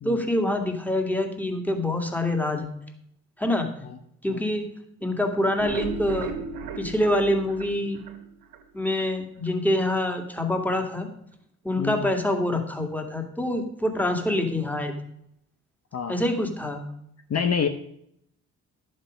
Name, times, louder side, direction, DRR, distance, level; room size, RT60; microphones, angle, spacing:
voice 1, 0.0-2.7 3.4-3.7 4.2-4.7 5.0-6.3 6.8-8.0 8.7-11.1 11.6-14.9 16.1-16.8, left 1 dB, 5° left, 4 dB, 2.3 m, -25 dB
sound 1, 5.4-8.6 9.0-9.1 9.5-9.6 9.9-10.0, right 5 dB, 85° right, 1.6 m, -36 dB
voice 2, 17.3-17.7, left 6 dB, 45° left, 7 dB, 0.9 m, -27 dB
11.0 x 7.6 x 5.1 m, 0.73 s
supercardioid pair, 55°, 36 cm